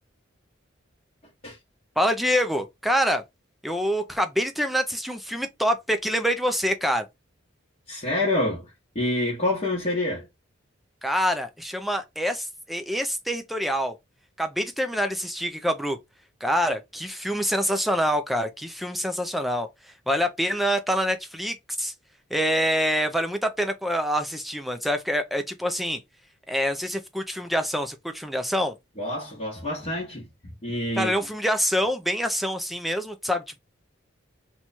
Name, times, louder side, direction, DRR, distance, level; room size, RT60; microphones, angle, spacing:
voice 1, 2.0-3.2 3.6-7.0 11.0-13.9 14.4-16.0 16.4-21.9 22.3-26.0 26.5-28.7 31.0-33.6, equal, ahead, 0.3 m, -26 dB
voice 2, 7.9-10.3 29.0-31.1, left 1 dB, 30° left, 1.0 m, -27 dB
3.0 x 2.2 x 4.0 m
head